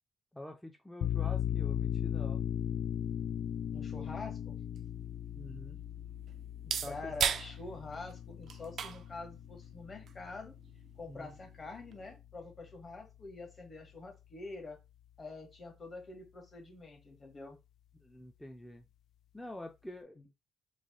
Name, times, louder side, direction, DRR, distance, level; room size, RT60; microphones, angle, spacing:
voice 1, 0.3-2.4 5.3-5.8 6.8-7.1 11.0-11.4 18.0-18.8 19.3-20.2, left 1 dB, 5° left, 3 dB, 0.5 m, -47 dB
sound 1, 1.0-12.3, left 10 dB, 70° left, 0.3 m, -38 dB
voice 2, 3.7-4.6 6.6-10.5 11.0-14.8 15.2-17.6 20.2-20.3, left 3 dB, 35° left, 3 dB, 1.4 m, -46 dB
sound 2, 4.5-12.2, right 7 dB, 65° right, 0.4 m, -41 dB
3.2 x 2.2 x 4.0 m, 0.24 s
cardioid pair, 90°, 0 cm